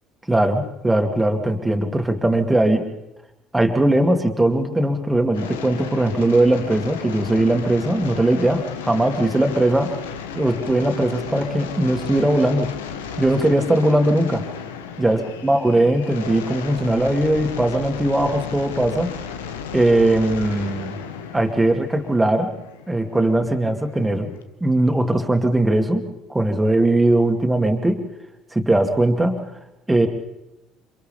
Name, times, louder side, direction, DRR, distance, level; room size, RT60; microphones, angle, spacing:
voice 1, 0.3-2.9 3.5-9.9 10.3-12.7 13.2-14.4 15.0-19.1 19.7-21.0 21.3-22.5 22.9-24.3 24.6-28.0 28.5-29.4 29.9-30.1, right 1 dB, 10° right, 5 dB, 2.6 m, -19 dB
sound 1, 5.3-24.4, left 7 dB, 70° left, 1.2 m, -34 dB
29.0 x 26.5 x 3.6 m, 0.92 s
figure-of-eight pair, 55°, 0 cm